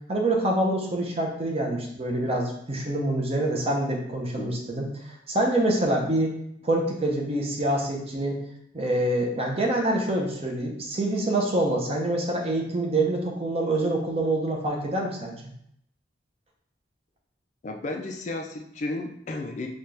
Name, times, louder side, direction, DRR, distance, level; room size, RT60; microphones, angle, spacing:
voice 1, 0.1-4.9 5.3-6.4 6.6-8.4 8.7-15.3, right 1 dB, 35° right, 0 dB, 0.7 m, -26 dB
voice 2, 17.6-19.7, left 2 dB, 40° left, 3 dB, 0.4 m, -33 dB
4.3 x 2.3 x 3.2 m, 0.73 s
head